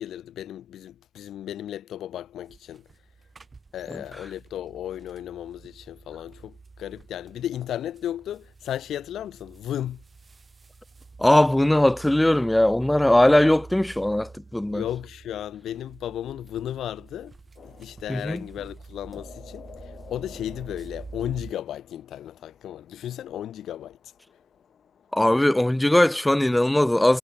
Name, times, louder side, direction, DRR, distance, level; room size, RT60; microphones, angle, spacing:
voice 1, 0.0-2.9 3.7-10.0 14.7-17.4 17.6-24.0, left 11 dB, 75° left, 1.4 m, -34 dB
sound 1, 2.4-21.5, right 4 dB, 30° right, 4.1 m, -47 dB
voice 2, 11.2-14.8 18.1-18.4 25.1-27.2, left 1 dB, 10° left, 0.7 m, -20 dB
sound 2, 17.6-25.5, left 7 dB, 55° left, 7.4 m, -52 dB
cardioid pair, 90°, 0 cm